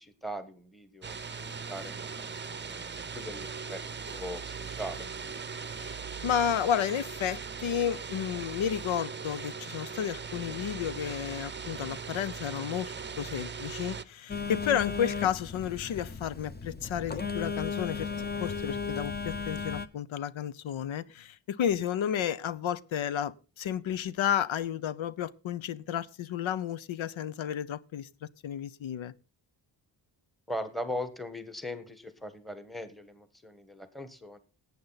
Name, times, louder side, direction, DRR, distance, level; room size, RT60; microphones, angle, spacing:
voice 1, 0.0-2.8 3.1-5.1 30.5-34.4, left 1 dB, ahead, 1.4 m, -40 dB
sound 1, 1.0-14.0, right 5 dB, 25° right, 0.7 m, -39 dB
voice 2, 5.8-18.1 18.4-29.1, left 9 dB, 85° left, 0.9 m, -32 dB
Telephone, 14.3-19.9, left 5 dB, 20° left, 0.8 m, -35 dB
18.0 x 8.5 x 4.0 m
wide cardioid pair, 130°, 46 cm